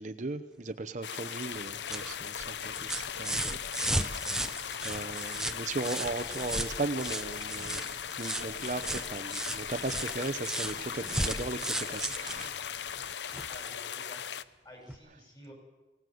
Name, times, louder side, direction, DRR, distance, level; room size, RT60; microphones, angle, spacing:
voice 1, 0.0-4.3 4.8-12.5 15.1-15.2, right 3 dB, 45° right, 8 dB, 0.8 m, -37 dB
sound 1, 1.0-14.4, left 8 dB, 75° left, 0.7 m, -38 dB
sound 2, 1.5-13.6 14.9-15.0, right 1 dB, 5° right, 0.8 m, -36 dB
voice 2, 13.5-15.5, equal, 25° left, 1 dB, 6.8 m, -52 dB
24.0 x 17.0 x 7.9 m, 1.1 s
head